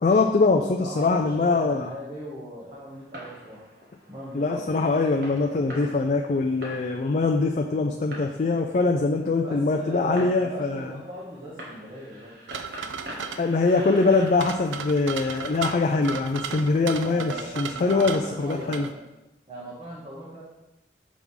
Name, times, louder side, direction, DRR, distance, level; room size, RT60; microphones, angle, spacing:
voice 1, 0.0-1.9 4.3-10.9 13.4-18.9, left 3 dB, 40° left, 2 dB, 0.4 m, -23 dB
voice 2, 0.6-3.6 4.1-4.9 9.4-12.4 17.0-19.1 19.5-20.4, equal, 30° right, -8 dB, 1.3 m, -39 dB
Fireworks, 2.9-17.7, equal, 55° right, 1.4 m, -46 dB
sound 1, 12.5-18.9, right 6 dB, 90° right, 0.4 m, -35 dB
6.2 x 3.5 x 5.4 m, 0.94 s
head